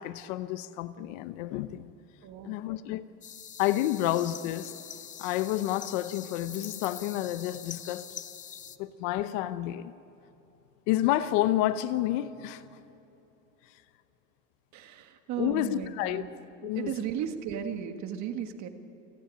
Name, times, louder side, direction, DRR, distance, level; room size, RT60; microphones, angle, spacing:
voice 1, 0.0-1.9 2.4-3.1 3.6-4.7 5.2-8.1 8.8-9.9 10.9-12.6 15.3-16.2 16.6-16.9, left 14 dB, 80° left, 0.9 m, -29 dB
voice 2, 2.2-2.6 14.7-16.3 16.6-18.7, right 9 dB, 45° right, 1.7 m, -35 dB
sound 1, 3.2-8.8, left 9 dB, 20° left, 0.5 m, -44 dB
29.0 x 10.5 x 8.8 m
cardioid pair, 155°, 38 cm